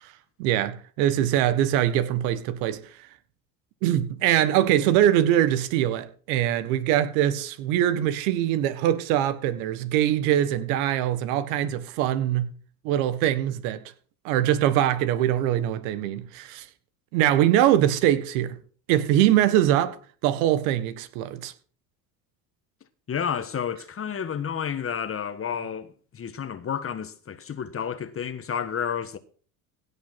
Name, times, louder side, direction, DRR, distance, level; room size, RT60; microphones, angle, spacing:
voice 1, 0.4-2.8 3.8-12.5 12.8-13.8 14.2-16.6 17.1-18.6 18.9-20.0 20.2-21.5, right 12 dB, 75° right, 1.7 m, -23 dB
voice 2, 23.1-29.2, left 7 dB, 30° left, 1.4 m, -31 dB
16.5 x 5.8 x 5.9 m
supercardioid pair, 90°, 43 cm